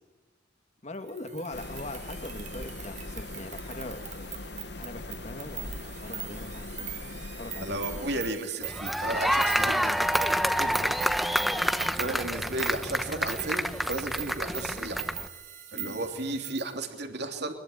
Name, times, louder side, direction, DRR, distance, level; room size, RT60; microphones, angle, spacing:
voice 1, 0.8-4.4 4.8-7.8 11.5-11.8 15.7-16.0, left 1 dB, 35° left, 7 dB, 2.3 m, -42 dB
sound 1, 1.1-16.7, right 10 dB, 35° right, 2.5 m, -41 dB
sound 2, 1.5-8.3, left 2 dB, 55° left, 1.1 m, -41 dB
voice 2, 7.6-10.1 10.6-11.0 11.9-15.0 15.7-17.5, right 2 dB, 55° right, 5 dB, 3.1 m, -34 dB
sound 3, 8.6-15.3, equal, ahead, 1.0 m, -28 dB
24.0 x 22.0 x 10.0 m, 1.2 s
head